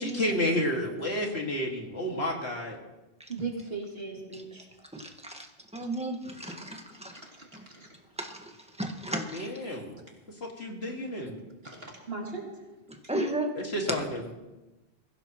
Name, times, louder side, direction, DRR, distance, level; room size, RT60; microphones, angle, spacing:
voice 1, 0.0-2.8 9.1-10.0 10.3-11.4 13.6-14.3, left 1 dB, 70° left, 1 dB, 2.4 m, -31 dB
voice 2, 3.3-4.7 5.8-5.9 6.4-6.6 7.1-7.5 7.7-7.9 11.6-12.5, right 4 dB, 60° right, -2 dB, 3.3 m, -38 dB
voice 3, 4.9-5.5 5.7-7.2 7.5-7.6 8.2-8.5 8.8-9.5 12.9-13.5, right 1 dB, 5° right, 2 dB, 1.6 m, -34 dB
22.5 x 16.0 x 3.1 m, 1.1 s
omnidirectional pair, 1.1 m